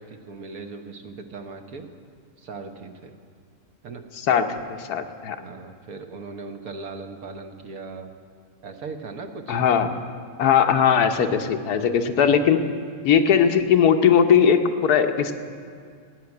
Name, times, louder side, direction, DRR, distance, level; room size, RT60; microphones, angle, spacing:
voice 1, 0.0-1.9 2.4-3.1 3.8-4.0 5.2-8.1 8.6-9.6, right 4 dB, 70° right, 5 dB, 1.4 m, -38 dB
voice 2, 4.3-5.4 9.5-9.9 10.4-12.6 13.0-15.3, left 7 dB, 80° left, 7 dB, 1.3 m, -19 dB
17.5 x 6.0 x 9.5 m, 2.2 s
omnidirectional pair, 1.6 m